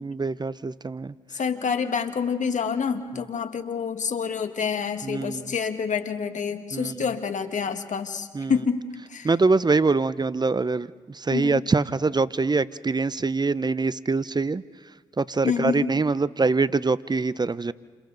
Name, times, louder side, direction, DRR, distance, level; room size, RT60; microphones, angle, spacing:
voice 1, 0.0-1.1 5.0-5.5 6.7-6.9 8.3-8.5 9.2-14.6 15.2-17.7, right 3 dB, 30° right, 17 dB, 0.7 m, -24 dB
voice 2, 1.3-9.3 11.3-11.6 15.4-15.9, left 6 dB, 65° left, 7 dB, 1.7 m, -27 dB
29.5 x 27.5 x 4.0 m, 1.4 s
supercardioid pair, 40°, 14 cm